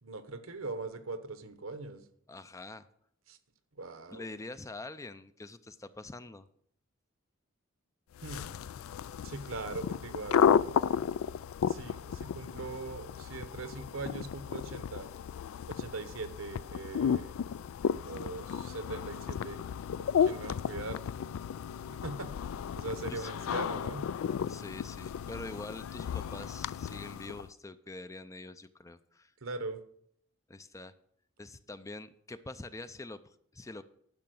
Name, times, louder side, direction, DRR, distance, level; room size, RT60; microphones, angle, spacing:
voice 1, 0.0-2.0 3.3-3.4 3.8-4.3 8.2-8.6 9.2-10.6 11.6-15.1 15.7-17.4 18.0-19.6 20.2-21.0 21.9-22.3 22.8-24.1 29.4-29.8, right 3 dB, 75° right, 11 dB, 1.0 m, -41 dB
voice 2, 2.3-2.9 4.1-6.5 23.1-23.3 24.5-29.3 30.5-30.9 31.4-33.8, left 2 dB, 15° left, 12 dB, 0.4 m, -45 dB
sound 1, 8.2-27.5, left 7 dB, 80° left, 0.3 m, -33 dB
11.0 x 5.7 x 7.7 m, 0.66 s
head